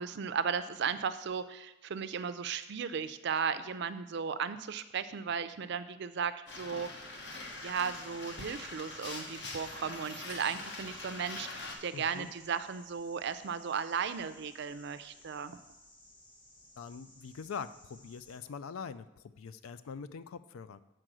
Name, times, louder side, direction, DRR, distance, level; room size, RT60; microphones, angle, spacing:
voice 1, 0.0-6.9 7.6-15.6, right 6 dB, 55° right, 12 dB, 0.4 m, -35 dB
sound 1, 6.5-11.7, left 2 dB, 55° left, 1.1 m, -43 dB
sound 2, 7.5-18.4, left 1 dB, 25° left, 1.3 m, -59 dB
voice 2, 11.9-12.3 16.8-20.8, left 6 dB, 85° left, 14 dB, 0.4 m, -43 dB
7.8 x 4.5 x 6.1 m, 0.95 s
head